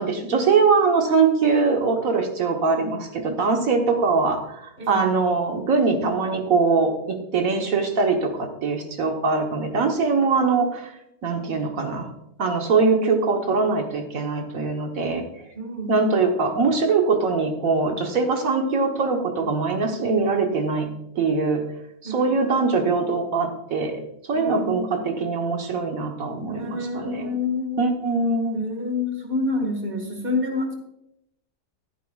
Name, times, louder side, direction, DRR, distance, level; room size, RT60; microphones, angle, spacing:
voice 1, 0.0-10.9 11.2-12.1 12.4-15.2 15.9-20.9 21.1-21.6 22.0-23.9 24.3-27.3 27.8-28.6, right 4 dB, 60° right, 3 dB, 1.6 m, -22 dB
voice 2, 15.6-15.9 22.1-22.2 24.3-25.0 26.5-27.9 28.5-30.7, left 2 dB, 35° right, 3 dB, 1.9 m, -28 dB
13.0 x 11.0 x 2.4 m, 0.80 s
omnidirectional pair, 1.7 m